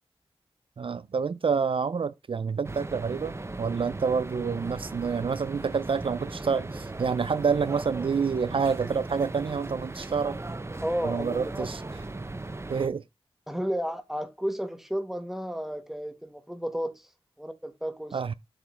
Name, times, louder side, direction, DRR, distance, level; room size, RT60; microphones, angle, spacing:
voice 1, 0.8-10.4 11.0-11.8 12.7-13.0 18.1-18.3, right 5 dB, 60° right, 0.4 m, -28 dB
sound 1, 2.6-12.9, right 2 dB, 25° right, 0.7 m, -38 dB
voice 2, 10.8-11.7 13.5-17.1 17.4-18.2, equal, 5° right, 1.4 m, -32 dB
7.4 x 4.4 x 3.2 m
wide cardioid pair, 75°, 10 cm